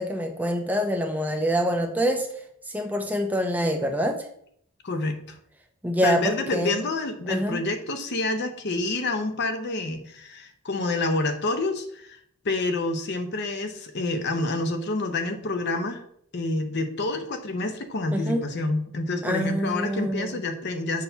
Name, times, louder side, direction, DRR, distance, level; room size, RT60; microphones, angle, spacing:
voice 1, 0.0-2.3 2.7-4.3 5.8-6.8 7.3-7.6 18.1-18.4 19.2-20.4, equal, 5° right, 4 dB, 0.5 m, -26 dB
voice 2, 4.8-5.4 6.0-12.2 12.4-16.0 16.3-21.0, left 2 dB, 50° left, 7 dB, 0.7 m, -28 dB
6.2 x 2.8 x 5.5 m, 0.67 s
head